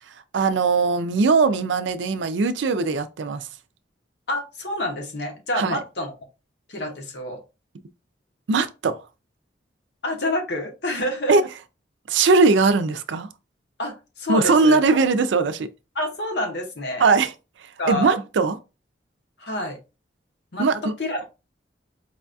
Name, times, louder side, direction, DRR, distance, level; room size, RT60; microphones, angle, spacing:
voice 1, 0.3-3.5 5.6-5.8 8.5-9.0 11.3-11.4 12.1-13.3 14.3-15.7 17.0-17.3 17.6-18.6 20.6-20.8, right 4 dB, 80° right, 0.4 m, -20 dB
voice 2, 4.3-6.1 6.7-7.4 10.0-11.4 13.8-14.8 15.9-17.1 17.8-18.1 19.4-19.8 20.5-20.7 21.0-21.2, left 1 dB, 65° left, 1.0 m, -28 dB
4.8 x 2.3 x 2.5 m
head